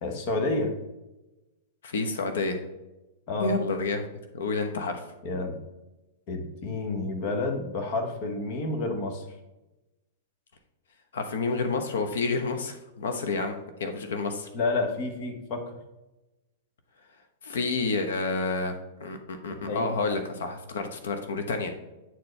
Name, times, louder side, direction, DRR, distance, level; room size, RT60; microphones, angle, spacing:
voice 1, 0.0-0.8 3.3-3.6 5.2-5.6 6.3-9.2 14.5-15.7 19.5-20.2, left 3 dB, 35° left, 4 dB, 1.1 m, -30 dB
voice 2, 1.8-2.6 3.4-4.1 4.3-5.0 11.1-14.5 17.4-21.7, left 3 dB, 90° left, 7 dB, 0.9 m, -29 dB
9.1 x 4.4 x 3.2 m, 1.0 s
supercardioid pair, 165°, 0 cm